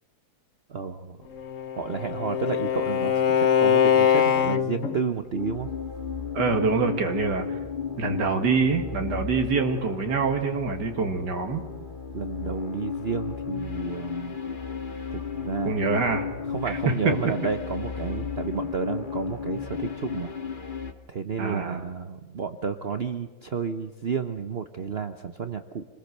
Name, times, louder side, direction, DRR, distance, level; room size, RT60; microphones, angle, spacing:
voice 1, 0.7-1.2 1.8-5.7 12.1-14.4 15.1-16.2 16.5-20.3 21.1-25.9, right 6 dB, 45° right, 8 dB, 1.0 m, -31 dB
Bowed string instrument, 1.4-5.0, left 8 dB, 55° left, 1.3 m, -22 dB
sound 1, 5.3-20.9, left 6 dB, 30° left, 1.7 m, -34 dB
voice 2, 6.3-7.6 8.0-11.6 15.6-16.3 16.7-17.1 21.4-21.8, right 4 dB, 85° right, 4 dB, 2.5 m, -25 dB
27.5 x 20.5 x 6.8 m, 1.4 s
omnidirectional pair, 1.8 m